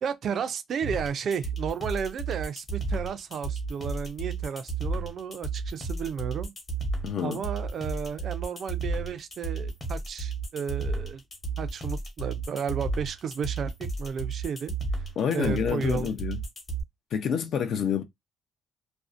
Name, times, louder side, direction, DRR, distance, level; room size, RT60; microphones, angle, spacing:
voice 1, 0.0-6.5 7.2-11.2 11.6-14.7 15.3-16.1, right 7 dB, 55° right, 0.3 m, -33 dB
sound 1, 0.8-16.8, right 3 dB, 30° left, 0.9 m, -32 dB
voice 2, 7.0-7.4 15.2-16.4 17.1-18.0, left 7 dB, 60° left, 0.5 m, -28 dB
2.5 x 2.0 x 2.4 m
cardioid pair, 125°, 0 cm